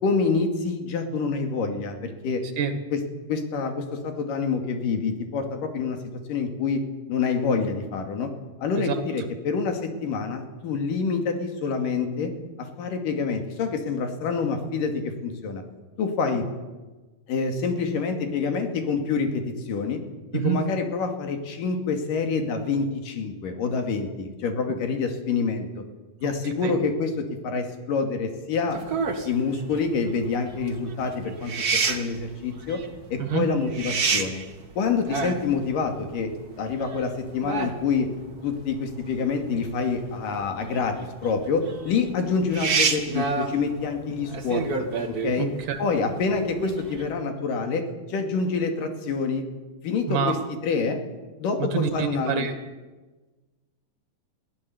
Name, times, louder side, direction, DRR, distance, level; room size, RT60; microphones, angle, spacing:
voice 1, 0.0-2.4 2.9-3.0 3.3-6.0 6.3-6.8 7.1-8.3 8.6-12.3 12.6-15.6 16.0-16.5 17.3-20.0 20.3-25.8 26.2-28.8 29.2-32.8 33.1-34.4 34.8-36.3 36.6-38.1 38.4-41.0 41.2-44.9 45.2-45.5 45.8-47.8 48.1-49.4 49.8-50.4 50.6-51.0 51.4-52.5, left 5 dB, 80° left, 5 dB, 4.0 m, -27 dB
sound 1, 28.7-47.1, right 5 dB, 35° right, 1.7 m, -30 dB
voice 2, 45.4-45.8 50.1-50.3 51.6-52.5, right 7 dB, 70° right, 8 dB, 3.5 m, -26 dB
22.5 x 16.0 x 8.4 m, 1.2 s
omnidirectional pair, 3.8 m